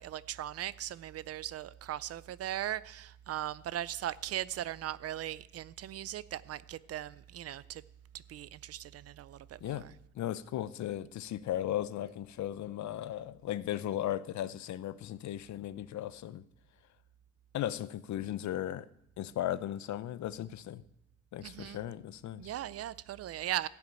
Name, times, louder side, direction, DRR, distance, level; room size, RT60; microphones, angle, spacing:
voice 1, 0.0-7.8 8.3-9.9 21.4-21.8 22.4-23.7, right 12 dB, 50° right, 0.5 m, -38 dB
voice 2, 10.1-16.4 17.5-18.9 19.2-20.8 21.3-22.5, left 12 dB, 65° left, 0.7 m, -36 dB
15.0 x 5.9 x 9.1 m
cardioid pair, 155°, 31 cm